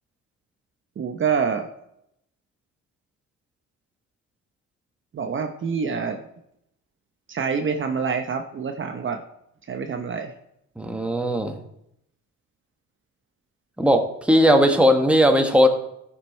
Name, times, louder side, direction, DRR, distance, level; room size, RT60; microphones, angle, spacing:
voice 1, 1.0-1.7 5.1-6.2 7.3-9.2 9.7-10.3, right 6 dB, 40° right, 5 dB, 0.8 m, -26 dB
voice 2, 10.8-11.6 13.8-15.7, equal, 5° right, 4 dB, 1.4 m, -18 dB
14.0 x 6.3 x 4.4 m, 0.79 s
cardioid pair, 90°, 30 cm